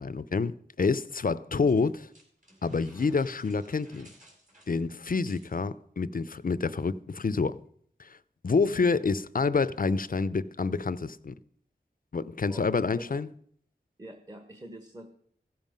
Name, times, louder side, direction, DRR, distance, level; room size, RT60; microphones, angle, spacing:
voice 1, 0.0-2.1 2.6-4.1 4.7-7.6 8.0-8.1 8.4-11.3 12.1-13.3, left 4 dB, 55° left, 0.6 m, -28 dB
sound 1, 1.7-5.6, right 1 dB, 45° right, 3.7 m, -56 dB
voice 2, 12.5-13.2 14.0-15.1, right 1 dB, 20° right, 1.3 m, -46 dB
15.5 x 7.3 x 5.3 m
wide cardioid pair, 55°, 18 cm